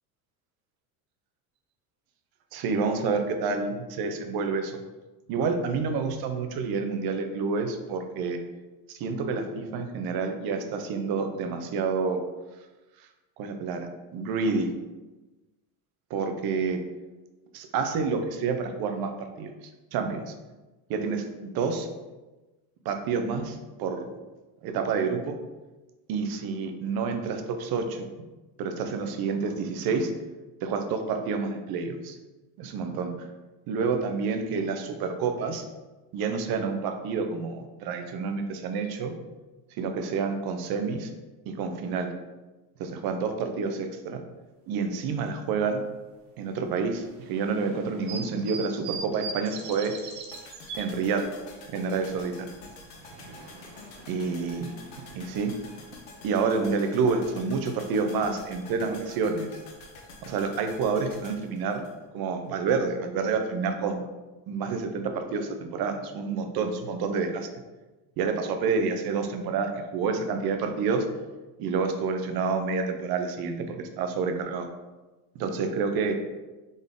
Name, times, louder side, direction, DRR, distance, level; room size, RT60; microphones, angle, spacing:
voice 1, 2.5-4.8 5.3-8.4 8.9-12.2 13.4-14.7 16.1-16.8 17.5-19.1 19.4-19.5 19.9-20.3 20.9-21.9 22.8-24.1 24.6-25.4 26.1-28.1 28.6-30.1 30.6-32.2 32.6-33.1 33.7-35.7 36.1-39.2 39.8-41.1 41.5-42.1 42.8-44.2 44.7-45.8 46.4-49.9 50.8-51.3 51.7-52.5 54.1-54.7 55.2-55.5 56.2-59.5 60.2-61.8 62.1-64.0 64.5-67.5 68.2-71.1 71.6-74.7 75.3-76.2, right 5 dB, 55° right, 7 dB, 0.7 m, -28 dB
sound 1, 47.0-50.8 52.6-56.3, right 4 dB, 75° right, 1.0 m, -42 dB
sound 2, 50.3-62.5 62.8-62.9, left 3 dB, 80° left, 1.1 m, -48 dB
4.0 x 3.5 x 3.6 m, 1.1 s
supercardioid pair, 110°, 45 cm